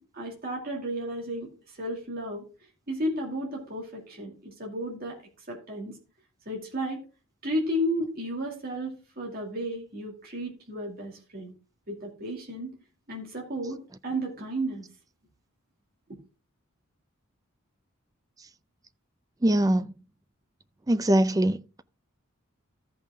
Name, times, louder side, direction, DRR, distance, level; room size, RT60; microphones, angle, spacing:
voice 1, 0.1-1.5 1.8-2.4 2.9-5.2 5.5-6.0 6.5-7.0 7.4-11.5 11.9-12.8 13.1-14.8, equal, 45° right, 2.4 m, -33 dB
voice 2, 19.4-19.9 20.9-21.8, right 1 dB, 15° right, 0.4 m, -22 dB
14.0 x 5.5 x 3.6 m
head